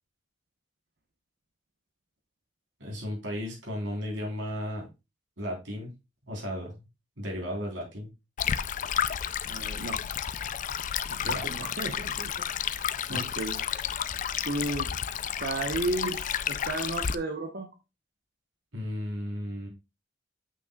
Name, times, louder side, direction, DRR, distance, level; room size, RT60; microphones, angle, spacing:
voice 1, 2.8-4.9 5.4-5.9 6.3-6.8 7.2-8.1 11.2-11.4 13.1-13.2 18.7-19.7, equal, 80° right, -1 dB, 3.9 m, -34 dB
Stream, 8.4-17.2, left 8 dB, 45° left, 0.4 m, -31 dB
voice 2, 9.4-10.0 11.1-12.3 12.6-13.6 14.4-15.0 15.4-17.7, right 2 dB, 55° right, 4 dB, 1.0 m, -34 dB
8.6 x 6.1 x 2.4 m, 0.25 s
head